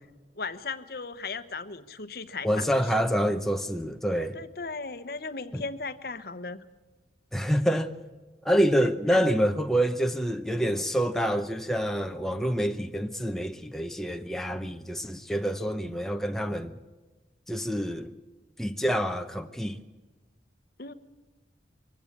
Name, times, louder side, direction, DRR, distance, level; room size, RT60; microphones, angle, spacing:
voice 1, 0.4-3.0 4.1-6.6 8.8-9.3 20.8-20.9, left 4 dB, 55° left, 1.0 m, -37 dB
voice 2, 2.4-4.4 5.5-5.6 7.3-7.9 8.4-16.7 17.5-18.2 18.6-19.8, equal, ahead, 0.7 m, -27 dB
23.0 x 16.0 x 8.4 m
head